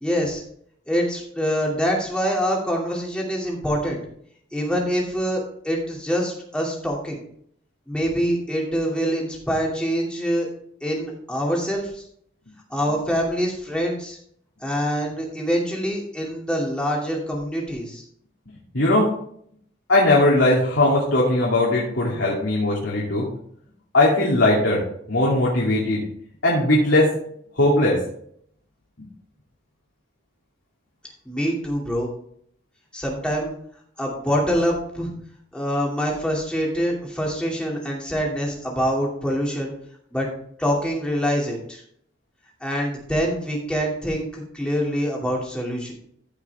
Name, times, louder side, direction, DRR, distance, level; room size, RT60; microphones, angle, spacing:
voice 1, 0.0-0.4 0.9-4.0 4.5-7.2 7.9-10.5 10.8-12.0 12.7-14.2 14.6-18.0 31.2-32.1 32.9-33.5 34.0-35.1 35.5-39.7 40.1-40.3 40.6-41.8 42.6-45.9, equal, 5° left, -3 dB, 2.5 m, -25 dB
voice 2, 18.7-19.1 19.9-23.2 23.9-24.8 25.1-26.0 26.4-27.1 27.6-28.0, left 1 dB, 85° left, -5 dB, 2.6 m, -19 dB
14.5 x 5.9 x 3.5 m, 0.65 s
head